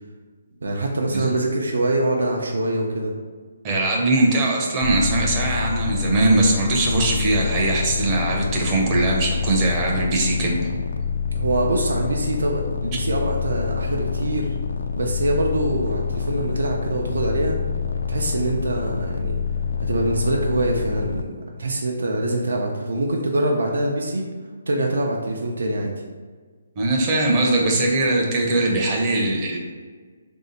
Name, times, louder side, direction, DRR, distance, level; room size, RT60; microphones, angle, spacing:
voice 1, 0.6-3.1 11.4-14.6 14.9-17.6 18.1-19.4 19.8-24.3 24.7-25.9, right 1 dB, 85° right, 0 dB, 0.5 m, -24 dB
voice 2, 3.6-10.6 26.8-29.6, right 2 dB, 20° right, -1 dB, 0.6 m, -21 dB
sound 1, 4.8-21.2, left 6 dB, 75° left, 0.3 m, -27 dB
3.3 x 2.7 x 4.1 m, 1.5 s
hypercardioid pair, 165°, 0 cm